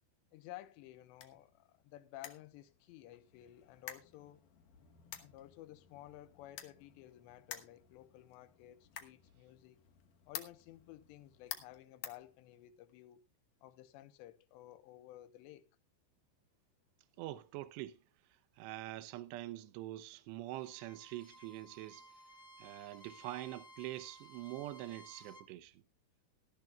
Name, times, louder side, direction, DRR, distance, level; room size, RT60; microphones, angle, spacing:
voice 1, 0.3-4.4 5.2-9.8 10.3-13.2 13.6-15.7, left 14 dB, 85° left, 3.0 m, -54 dB
sound 1, 0.6-12.9, left 10 dB, 70° left, 2.0 m, -52 dB
voice 2, 17.2-18.0 18.6-22.1 22.6-25.8, right 15 dB, 80° right, 2.9 m, -45 dB
Bowed string instrument, 20.5-25.5, right 1 dB, 25° right, 1.3 m, -57 dB
18.0 x 12.0 x 2.3 m
omnidirectional pair, 5.1 m